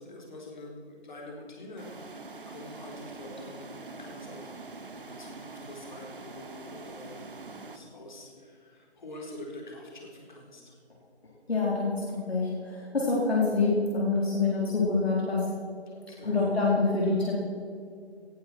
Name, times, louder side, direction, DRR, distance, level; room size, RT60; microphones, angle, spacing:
voice 1, 0.0-10.8 16.1-16.6, left 1 dB, 45° left, -1 dB, 4.2 m, -46 dB
sound 1, 1.8-7.8, right 3 dB, 50° right, 1.2 m, -44 dB
voice 2, 11.5-15.5 16.2-17.3, left 3 dB, 65° left, -5 dB, 4.1 m, -26 dB
19.0 x 11.5 x 4.5 m, 2.3 s
figure-of-eight pair, 160°, 34 cm